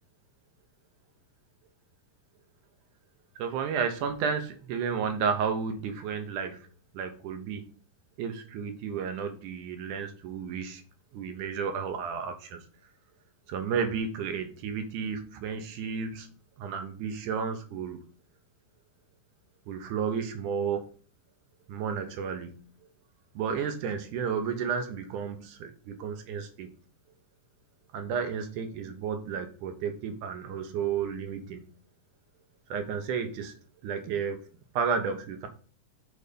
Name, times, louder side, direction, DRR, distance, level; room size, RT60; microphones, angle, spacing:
voice 1, 3.4-6.7 6.9-7.7 8.2-10.8 11.1-12.6 13.5-18.0 19.7-20.9 21.7-22.6 23.4-26.7 27.9-31.7 32.7-33.6 33.8-34.5 34.7-35.5, right 6 dB, 75° right, 7 dB, 2.2 m, -32 dB
6.6 x 4.0 x 5.1 m, 0.39 s
omnidirectional pair, 3.8 m